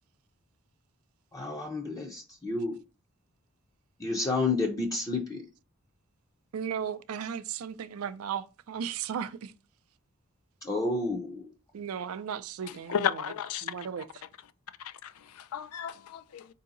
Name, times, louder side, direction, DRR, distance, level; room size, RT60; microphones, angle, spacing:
voice 1, 1.3-2.8 4.0-5.5 10.6-11.5, left 3 dB, 15° left, 0.6 m, -30 dB
voice 2, 6.5-9.5 11.7-13.1 13.6-14.1, right 7 dB, 70° right, 0.4 m, -35 dB
voice 3, 12.6-13.9 14.8-16.5, left 8 dB, 80° left, 0.4 m, -34 dB
4.6 x 2.7 x 3.8 m
head